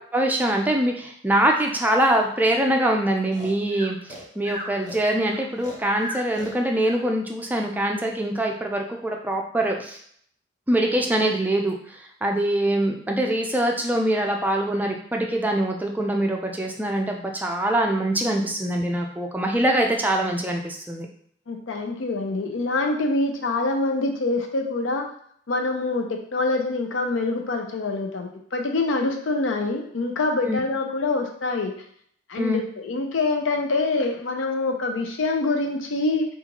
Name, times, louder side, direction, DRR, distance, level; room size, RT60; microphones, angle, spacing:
voice 1, 0.1-10.0 10.7-21.1 30.5-30.6 32.4-32.6, right 1 dB, 10° right, 1 dB, 0.4 m, -23 dB
Breathing, 3.3-7.0, left 1 dB, 40° left, 0.7 m, -37 dB
voice 2, 21.5-25.0 25.5-31.7 32.3-36.3, left 3 dB, 85° left, 3 dB, 0.5 m, -25 dB
3.8 x 2.5 x 2.8 m, 0.64 s
head